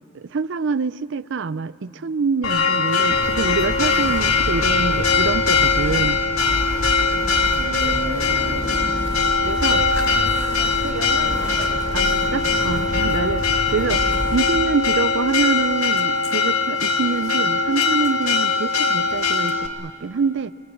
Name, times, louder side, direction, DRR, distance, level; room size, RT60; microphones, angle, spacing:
voice 1, 0.1-6.2 9.4-9.8 11.9-14.0 14.3-20.5, right 5 dB, 55° right, 16 dB, 0.5 m, -25 dB
Church bell, 2.4-19.7, left 4 dB, 80° left, 1.7 m, -21 dB
sound 1, 3.0-14.4, equal, 20° left, 4.9 m, -29 dB
voice 2, 7.5-8.9 9.7-12.9 13.8-14.1, right 2 dB, 80° right, 0 dB, 3.1 m, -34 dB
23.5 x 22.5 x 8.5 m, 2.7 s
head